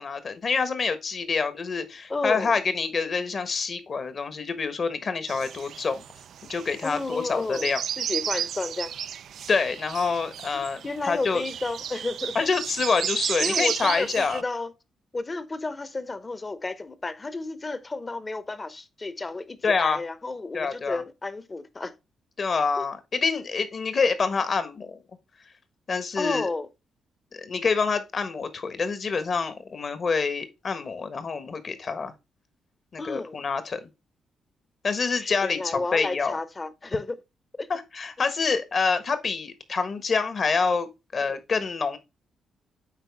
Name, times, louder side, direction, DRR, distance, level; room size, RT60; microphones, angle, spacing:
voice 1, 0.0-6.0 6.5-7.8 9.5-11.4 12.3-14.4 19.6-20.0 20.5-21.0 22.4-25.0 25.9-26.5 27.3-32.1 32.9-33.9 34.8-36.4 37.7-42.0, left 5 dB, 50° left, 1.3 m, -27 dB
voice 2, 2.1-2.5 6.8-8.9 10.5-12.3 13.4-14.7 15.1-21.9 22.8-22.9 26.2-26.7 33.0-33.3 35.2-37.2 37.6-37.7 41.2-41.4, left 3 dB, 30° left, 0.9 m, -32 dB
sound 1, 5.3-14.4, right 9 dB, 70° right, 0.3 m, -34 dB
9.0 x 3.9 x 3.5 m
cardioid pair, 65°, 0 cm